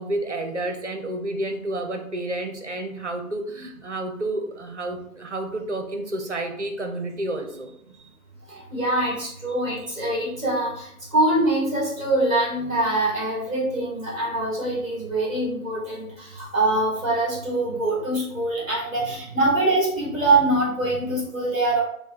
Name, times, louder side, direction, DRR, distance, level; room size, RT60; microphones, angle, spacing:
voice 1, 0.0-7.7 19.0-19.1 20.3-20.4, right 1 dB, 55° right, 5 dB, 0.7 m, -30 dB
voice 2, 8.5-21.8, right 2 dB, 5° right, -6 dB, 1.5 m, -24 dB
5.5 x 2.2 x 3.7 m, 0.71 s
figure-of-eight pair, 175°, 44 cm